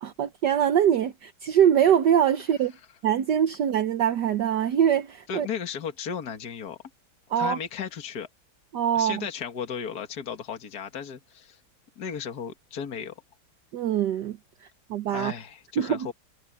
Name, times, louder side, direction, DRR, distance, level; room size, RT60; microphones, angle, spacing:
voice 1, 0.0-2.7 3.0-5.5 7.3-7.6 8.7-9.3 13.7-14.4 14.9-15.3 15.8-16.1, right 9 dB, 65° right, 1.4 m, -23 dB
voice 2, 5.3-6.8 7.4-8.3 8.9-11.6 12.0-13.2 15.1-16.1, left 7 dB, 50° left, 2.2 m, -35 dB
omnidirectional pair, 2.2 m